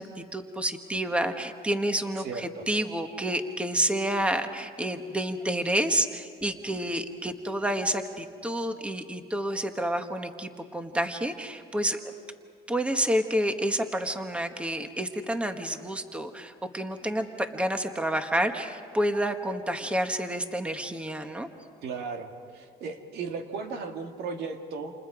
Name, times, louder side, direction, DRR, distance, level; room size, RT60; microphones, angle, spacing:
voice 1, 0.0-12.1 12.7-21.5, right 1 dB, 5° right, 6 dB, 1.4 m, -29 dB
voice 2, 2.2-2.7 21.8-24.9, right 4 dB, 75° right, 5 dB, 2.1 m, -36 dB
29.0 x 28.5 x 5.0 m, 2.1 s
cardioid pair, 110°, 17 cm